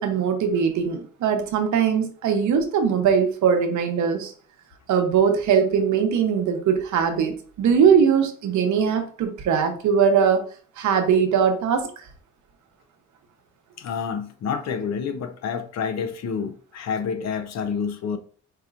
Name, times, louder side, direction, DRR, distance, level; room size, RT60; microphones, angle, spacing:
voice 1, 0.0-4.3 4.9-10.4 10.8-11.9, right 7 dB, 75° right, 0.8 m, -21 dB
voice 2, 13.8-18.2, left 6 dB, 60° left, 0.6 m, -28 dB
4.8 x 2.8 x 2.4 m
cardioid pair, 90°, 30 cm